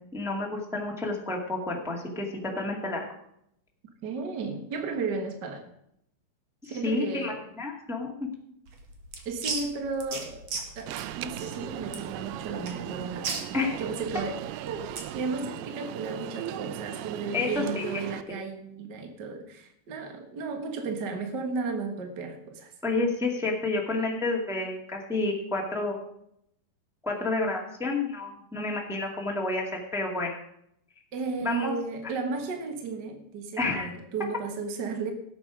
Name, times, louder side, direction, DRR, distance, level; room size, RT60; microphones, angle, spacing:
voice 1, 0.1-3.0 6.6-8.3 13.5-13.7 17.3-18.0 18.3-18.4 22.8-26.0 27.0-30.4 31.4-31.7 33.6-33.9, left 3 dB, ahead, -1 dB, 0.7 m, -30 dB
voice 2, 4.0-5.6 6.6-7.4 9.2-10.4 10.7-14.4 14.6-22.7 31.1-35.1, right 4 dB, 65° right, 4 dB, 1.0 m, -34 dB
sound 1, 8.7-15.2, right 4 dB, 50° right, 2.4 m, -37 dB
Alarm, 10.9-18.2, right 13 dB, 85° right, 2.6 m, -38 dB
18.0 x 8.3 x 5.0 m, 0.74 s
omnidirectional pair, 4.5 m